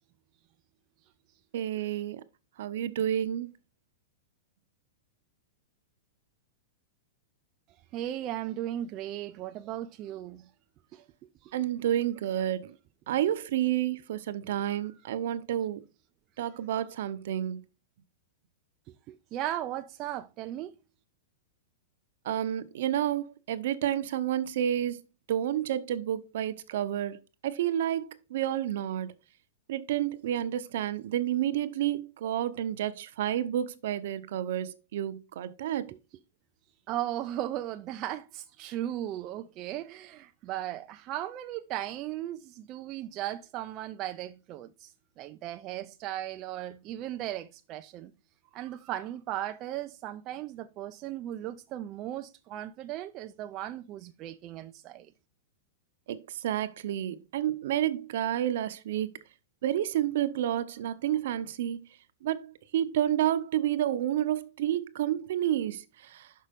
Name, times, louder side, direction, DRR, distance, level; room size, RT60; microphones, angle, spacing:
voice 1, 1.5-2.2 2.6-3.5 11.5-12.7 13.1-15.8 16.4-17.6 22.2-25.0 25.3-29.1 29.7-35.9 56.1-59.1 59.6-61.9 62.2-66.3, right 11 dB, 55° right, 0.7 m, -30 dB
voice 2, 7.9-10.5 10.9-11.0 11.4-11.6 14.8-14.9 19.1-20.7 36.9-48.1 48.5-55.1, right 12 dB, 25° right, 0.3 m, -37 dB
6.0 x 5.5 x 5.1 m
supercardioid pair, 175°, 0 cm